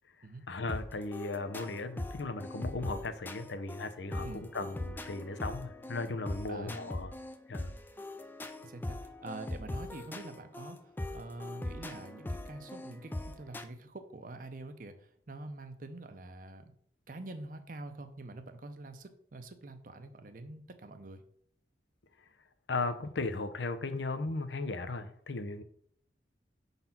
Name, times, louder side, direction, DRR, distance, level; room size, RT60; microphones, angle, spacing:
voice 1, 0.5-7.1 7.5-7.7 22.7-25.6, left 3 dB, 85° left, 10 dB, 0.7 m, -36 dB
sound 1, 0.7-13.6, left 1 dB, 10° left, 0.4 m, -41 dB
voice 2, 4.1-4.4 6.5-6.8 8.6-16.7 17.1-21.2, right 2 dB, 50° right, 8 dB, 0.7 m, -46 dB
5.3 x 4.0 x 5.8 m, 0.63 s
head